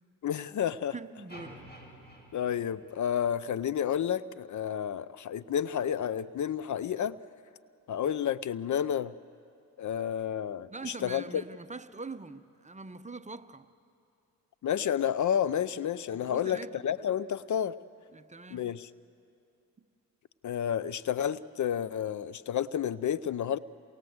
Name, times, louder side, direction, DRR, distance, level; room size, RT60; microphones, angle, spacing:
voice 1, 0.2-0.9 2.3-7.2 7.9-9.1 9.8-11.4 14.6-17.7 18.5-18.9 20.4-23.6, left 9 dB, 55° left, 18 dB, 0.6 m, -30 dB
voice 2, 0.9-1.7 10.7-13.7 16.1-16.8 18.1-18.7 19.8-19.9, right 3 dB, 20° right, 11 dB, 0.8 m, -43 dB
sound 1, 1.3-3.6, equal, 30° left, 5.4 m, -51 dB
27.5 x 19.5 x 7.9 m, 2.5 s
cardioid pair, 65°, 36 cm